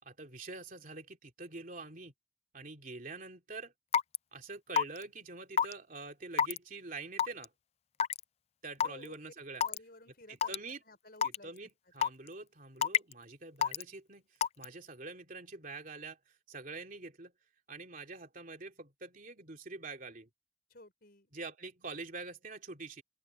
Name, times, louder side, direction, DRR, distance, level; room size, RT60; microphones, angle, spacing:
voice 1, 0.0-2.1 2.5-3.7 4.3-7.5 8.6-9.6 10.3-10.8 11.2-14.3 14.6-17.3 17.7-20.3 21.3-23.0, right 3 dB, 45° right, 3.0 m, -45 dB
Raindrop / Water tap faucet / Drip, 3.9-4.2 4.8-5.0 5.6-5.7 6.4-6.6 7.2-7.5 8.0-8.2 8.8-8.9 9.6-9.8 10.4-10.6 11.2-11.4 12.0-12.3 12.8-13.1 13.6-13.8 14.4-14.7, left 7 dB, 35° left, 0.3 m, -27 dB
voice 2, 8.8-9.2 9.6-10.5 10.9-11.5 20.7-21.3, left 2 dB, 55° left, 5.0 m, -54 dB
open air
head